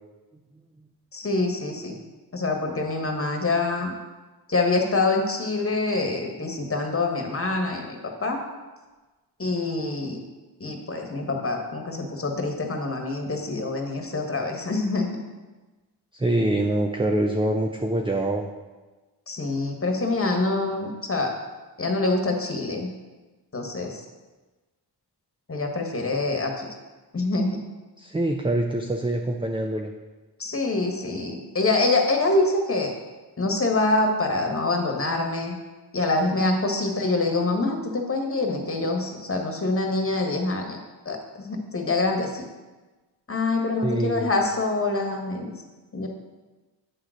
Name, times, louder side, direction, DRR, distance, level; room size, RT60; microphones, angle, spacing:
voice 1, 1.1-2.0 2.3-3.9 4.5-8.4 9.4-10.2 10.6-15.2 19.3-21.3 21.8-22.9 23.5-24.0 25.5-26.7 27.1-27.6 30.4-32.9 33.4-35.5 35.9-40.8 41.0-42.4 43.3-45.5 45.9-46.1, left 2 dB, 30° left, 2 dB, 1.5 m, -25 dB
voice 2, 16.1-18.5 28.0-29.9 43.8-44.3, right 1 dB, 10° right, 3 dB, 0.6 m, -25 dB
8.5 x 3.9 x 6.3 m, 1.2 s
cardioid pair, 55°, 42 cm